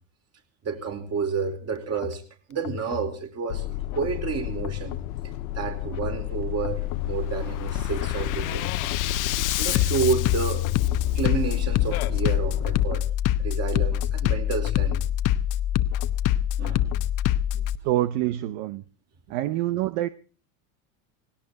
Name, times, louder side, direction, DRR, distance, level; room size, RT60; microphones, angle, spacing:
voice 1, 0.6-2.2 2.5-3.7 3.9-5.0 5.5-8.6 9.5-10.7 11.1-13.0 13.4-15.0 16.6-17.0 17.5-17.6 19.3-19.4, right 5 dB, 35° right, 5 dB, 4.7 m, -30 dB
Bass drum, 1.9-2.2 2.6-3.1 3.9-4.2 4.6-5.1 5.9-6.2 6.6-7.1 7.6-17.8, left 12 dB, 45° left, 1.0 m, -26 dB
sound 1, 3.5-12.8, left 13 dB, 85° left, 1.6 m, -31 dB
voice 2, 17.8-18.8 19.3-20.1, right 14 dB, 65° right, 14 dB, 1.0 m, -26 dB
18.5 x 17.5 x 4.1 m, 0.37 s
supercardioid pair, 105°, 42 cm